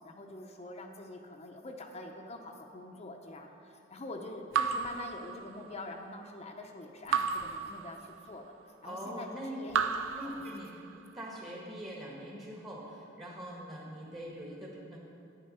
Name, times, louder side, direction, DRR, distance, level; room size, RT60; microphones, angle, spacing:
voice 1, 0.0-9.9 10.2-10.5, left 2 dB, 35° left, 2 dB, 0.7 m, -45 dB
Raindrop / Drip, 4.5-5.9 7.1-8.5 9.7-11.1, right 6 dB, 85° right, 0.5 m, -34 dB
voice 2, 8.8-9.8 10.1-15.0, equal, 25° right, -4 dB, 1.5 m, -43 dB
11.0 x 9.0 x 5.5 m, 2.6 s
head